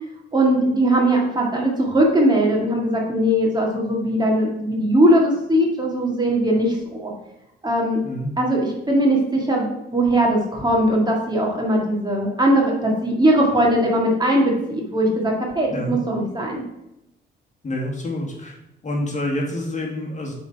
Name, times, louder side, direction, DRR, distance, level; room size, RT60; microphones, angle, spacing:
voice 1, 0.3-7.1 7.6-8.0 8.4-16.6, right 1 dB, 20° right, -2 dB, 1.9 m, -20 dB
voice 2, 17.6-18.6 18.8-20.3, left 1 dB, 35° left, -1 dB, 1.9 m, -27 dB
6.9 x 4.0 x 4.7 m, 0.86 s
cardioid pair, 90°, 20 cm